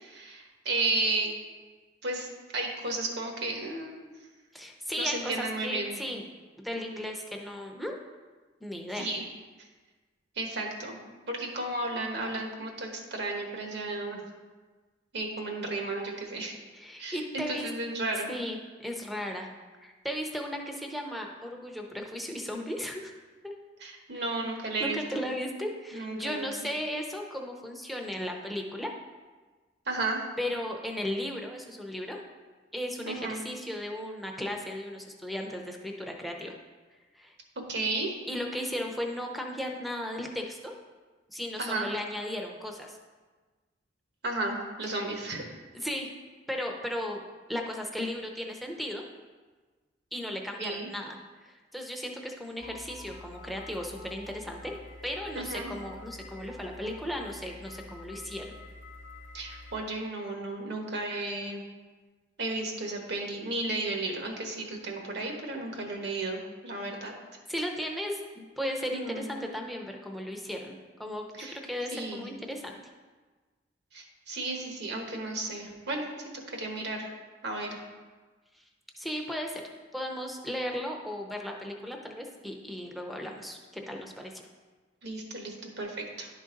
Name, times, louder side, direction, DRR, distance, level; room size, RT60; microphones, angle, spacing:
voice 1, 0.0-1.3 2.0-2.3 2.5-4.0 5.0-6.0 9.0-9.2 10.4-11.0 11.3-14.3 15.1-16.6 17.0-18.3 23.8-25.2 25.9-26.5 29.9-30.3 33.1-33.4 37.7-38.1 41.6-41.9 44.2-45.5 50.6-50.9 55.3-55.7 59.3-61.6 62.4-67.1 68.9-69.3 71.4-71.6 71.9-72.3 73.9-76.0 76.5-77.1 77.4-77.8 85.0-86.3, right 2 dB, 65° right, 1 dB, 1.2 m, -33 dB
voice 2, 4.5-6.3 6.6-8.0 8.6-9.1 16.7-17.7 18.2-19.5 19.8-23.1 23.4-23.5 24.8-28.9 30.4-32.2 32.7-36.5 37.1-37.3 38.3-40.7 41.3-43.0 44.9-45.0 45.7-46.1 46.5-47.2 47.5-49.0 50.1-54.7 55.0-58.6 67.5-72.7 78.6-78.7 79.0-79.6 79.9-84.4, equal, ahead, 0 dB, 0.7 m, -36 dB
sound 1, 52.6-59.8, left 2 dB, 85° left, 0.9 m, -47 dB
11.0 x 4.0 x 3.8 m, 1.3 s
head